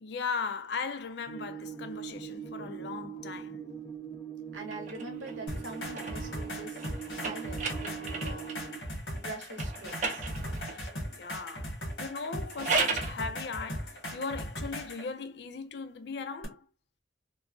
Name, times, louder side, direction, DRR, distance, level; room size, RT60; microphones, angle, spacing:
voice 1, 0.0-3.6 11.1-16.6, left 5 dB, 60° left, 0.4 m, -38 dB
sound 1, 1.3-8.8, right 7 dB, 5° left, 0.7 m, -41 dB
voice 2, 4.5-8.5 9.1-10.3, right 2 dB, 90° right, 0.8 m, -44 dB
sound 2, 4.6-8.7 9.5-10.9 12.3-13.2, right 3 dB, 40° right, 0.5 m, -35 dB
sound 3, 5.5-15.1 16.4-16.5, equal, 80° left, 1.2 m, -38 dB
3.1 x 2.1 x 2.5 m
head